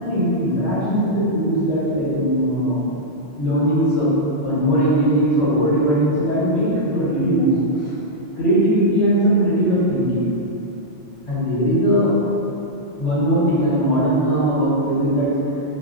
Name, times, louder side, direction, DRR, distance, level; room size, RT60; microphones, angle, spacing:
voice 1, 0.0-2.8 3.4-4.1 4.4-7.9 8.4-10.3 11.3-12.1 13.0-15.3, right 1 dB, 75° left, -9 dB, 1.4 m, -19 dB
4.1 x 2.3 x 2.5 m, 3.0 s
omnidirectional pair, 1.1 m